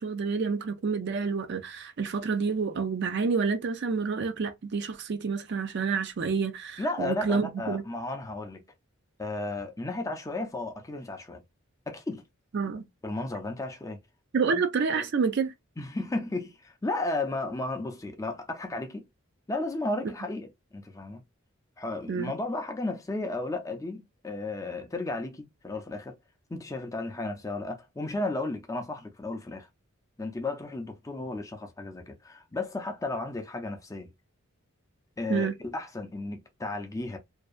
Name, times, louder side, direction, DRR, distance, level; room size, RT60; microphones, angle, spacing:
voice 1, 0.0-7.8 12.5-12.8 14.3-15.5 22.1-22.3 35.3-35.5, right 5 dB, 55° right, 0.4 m, -28 dB
voice 2, 6.8-8.6 9.2-11.4 11.9-12.2 13.0-14.0 14.5-14.6 14.9-15.1 15.8-19.1 19.5-21.2 21.8-26.2 26.5-29.7 30.2-34.1 35.2-37.2, left 2 dB, 15° left, 0.4 m, -34 dB
2.6 x 2.2 x 2.4 m
head